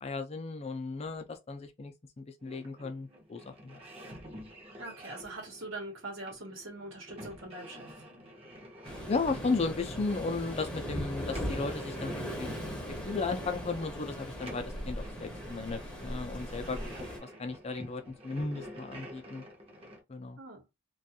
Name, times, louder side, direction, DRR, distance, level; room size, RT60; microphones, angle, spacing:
voice 1, 0.0-3.8 9.1-12.5 13.1-16.8 17.2-19.4 20.1-20.4, left 3 dB, 30° left, 0.4 m, -35 dB
sound 1, 2.4-20.0, equal, 30° right, 0.7 m, -48 dB
voice 2, 4.8-8.0 20.4-20.6, right 2 dB, 70° right, 1.0 m, -43 dB
Waves surf, 8.8-17.2, equal, 5° left, 0.7 m, -39 dB
2.5 x 2.3 x 2.7 m
head